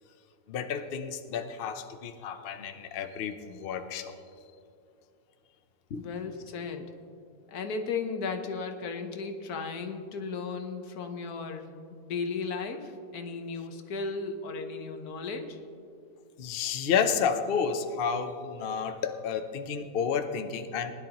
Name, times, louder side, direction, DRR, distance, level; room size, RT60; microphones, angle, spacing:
voice 1, 0.5-4.2 5.9-6.1 16.4-20.9, left 6 dB, 85° left, 8 dB, 0.5 m, -31 dB
voice 2, 6.0-6.9 7.5-15.6, left 4 dB, 60° left, 6 dB, 1.4 m, -35 dB
20.0 x 11.0 x 2.9 m, 2.4 s
omnidirectional pair, 1.9 m